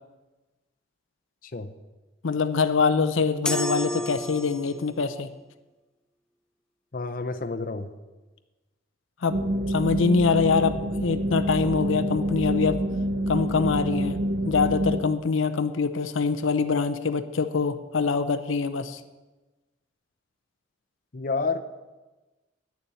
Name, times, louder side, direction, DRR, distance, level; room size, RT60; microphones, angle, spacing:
voice 1, 1.4-1.7 6.9-7.9 21.1-21.6, left 4 dB, 45° left, 7 dB, 0.6 m, -29 dB
voice 2, 2.2-5.3 9.2-9.4 9.7-12.8 13.3-14.2 14.4-19.0, left 5 dB, 85° left, 10 dB, 0.6 m, -24 dB
sound 1, 3.5-5.0, equal, 5° left, 0.4 m, -30 dB
sound 2, 9.3-15.0, equal, 65° right, 1.1 m, -27 dB
9.5 x 7.0 x 8.9 m, 1.2 s
head